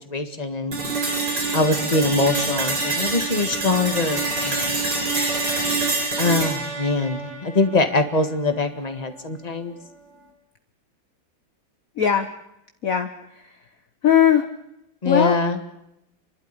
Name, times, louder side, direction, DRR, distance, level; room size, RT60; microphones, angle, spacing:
voice 1, 0.1-0.8 1.5-4.7 6.2-9.7 15.0-15.7, left 3 dB, 20° left, 7 dB, 1.9 m, -23 dB
sound 1, 0.7-8.7, right 3 dB, 75° right, 4.6 m, -26 dB
voice 2, 12.0-12.3 12.8-13.6 14.0-14.5 15.0-15.4, left 8 dB, 55° left, 8 dB, 1.4 m, -19 dB
29.5 x 12.0 x 9.9 m, 0.83 s
omnidirectional pair, 1.9 m